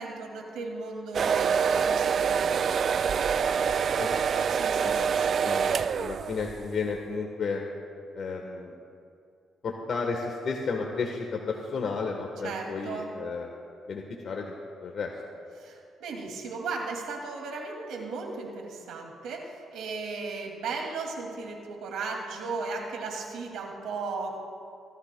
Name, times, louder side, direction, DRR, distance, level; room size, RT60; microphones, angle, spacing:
voice 1, 0.0-3.7 4.5-5.5 12.4-13.1 15.6-24.4, right 4 dB, 85° right, 1 dB, 2.3 m, -36 dB
sound 1, 1.1-6.7, right 6 dB, 55° right, 0.4 m, -26 dB
voice 2, 5.4-7.6 8.1-8.7 9.6-13.5 13.9-14.5 14.8-15.1, left 4 dB, 55° left, 1 dB, 1.2 m, -33 dB
25.5 x 12.5 x 2.2 m, 2.4 s
cardioid pair, 90°, 0 cm